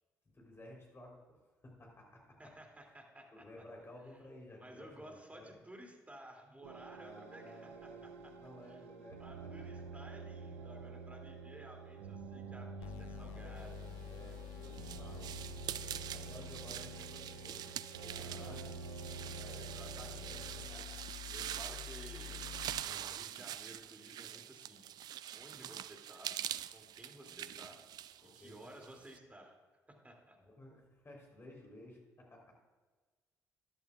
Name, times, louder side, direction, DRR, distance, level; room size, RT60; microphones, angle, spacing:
voice 1, 0.3-2.4 3.3-5.6 7.0-9.8 14.0-18.8 19.0-21.0 22.2-23.2 27.2-27.7 28.2-29.0 30.4-32.5, left 1 dB, 30° left, 0 dB, 3.7 m, -56 dB
voice 2, 2.4-3.6 4.6-7.7 8.0-8.1 8.7-8.8 9.2-13.9 18.1-18.5 19.5-20.6 21.3-22.5 22.8-24.9 25.3-26.4 26.7-27.8 28.3-29.6 29.9-30.4, right 1 dB, 15° right, 1 dB, 2.7 m, -55 dB
sound 1, 6.6-20.7, right 4 dB, 75° right, 0.7 m, -48 dB
sound 2, 12.8-22.8, left 12 dB, 70° left, 0.5 m, -50 dB
sound 3, 14.0-29.2, right 11 dB, 55° right, 0.3 m, -45 dB
14.0 x 11.0 x 2.4 m, 1.3 s
figure-of-eight pair, 45°, 8 cm